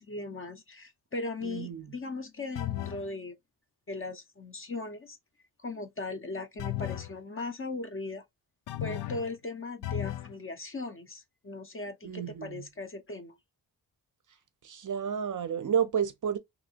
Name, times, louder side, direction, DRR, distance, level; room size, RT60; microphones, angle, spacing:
voice 1, 0.0-3.3 3.9-5.2 5.6-8.2 8.8-13.4, left 3 dB, 30° left, 0.6 m, -38 dB
voice 2, 1.4-1.9 12.0-12.6 14.6-16.4, right 8 dB, 50° right, 0.5 m, -31 dB
sound 1, 2.6-3.1 6.6-7.1 8.7-9.3 9.8-10.3, left 14 dB, 80° left, 0.5 m, -34 dB
3.2 x 2.7 x 2.7 m
wide cardioid pair, 150°, 41 cm